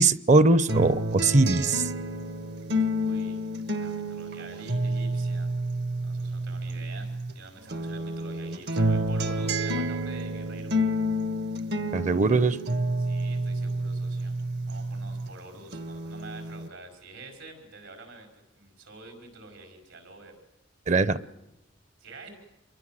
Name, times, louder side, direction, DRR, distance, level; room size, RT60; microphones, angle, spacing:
voice 1, 0.0-1.9 11.9-12.6 20.9-21.2, right 3 dB, 40° right, 17 dB, 0.9 m, -21 dB
sound 1, 0.7-7.3 7.7-15.3 15.7-16.7, equal, 60° right, 1.3 m, -29 dB
voice 2, 3.0-3.4 3.8-5.5 6.0-10.8 13.0-14.4 14.6-18.3 18.6-20.4 22.0-22.3, right 2 dB, 80° right, 5 dB, 5.8 m, -46 dB
27.5 x 23.0 x 7.7 m, 0.89 s
head